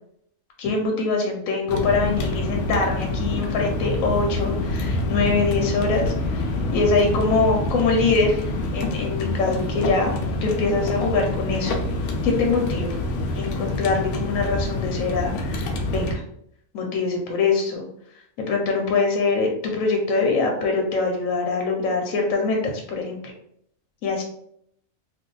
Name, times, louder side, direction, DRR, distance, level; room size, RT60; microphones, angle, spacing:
voice 1, 0.6-10.1 10.4-11.8 12.2-12.9 13.3-16.2 16.7-17.8 18.4-23.2 24.0-24.2, left 4 dB, 90° left, 1 dB, 1.0 m, -23 dB
sound 1, 1.7-16.1, left 2 dB, 70° left, 0.8 m, -26 dB
2.6 x 2.2 x 3.8 m, 0.72 s
omnidirectional pair, 1.4 m